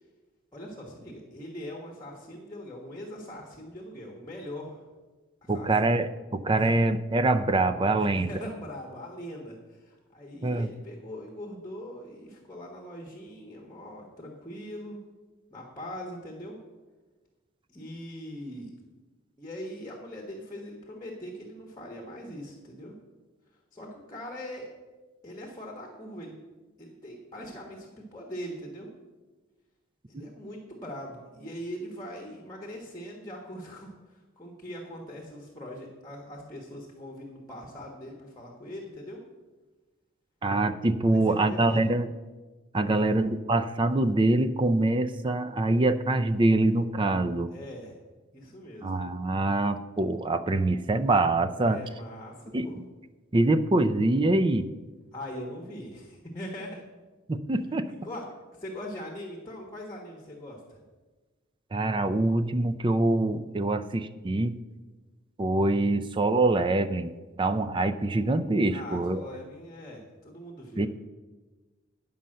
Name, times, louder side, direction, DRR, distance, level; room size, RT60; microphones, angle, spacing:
voice 1, 0.5-4.8 5.4-5.9 6.6-6.7 8.0-15.0 15.5-16.6 17.7-18.7 19.4-22.9 23.7-24.7 25.2-26.3 26.8-28.9 30.1-39.2 41.1-41.9 42.9-43.1 47.5-48.0 48.3-48.9 51.6-52.7 55.1-56.8 57.9-58.3 58.5-60.8 68.7-70.9, equal, 15° left, 0 dB, 1.3 m, -41 dB
voice 2, 5.5-8.4 10.4-10.7 30.1-30.3 40.4-42.1 42.7-47.5 48.8-51.8 52.5-52.8 53.3-54.7 57.3-57.9 61.7-64.6 65.4-67.1 67.4-69.2 70.8-70.9, right 2 dB, 25° right, 10 dB, 0.4 m, -25 dB
10.0 x 5.5 x 7.6 m, 1.3 s
head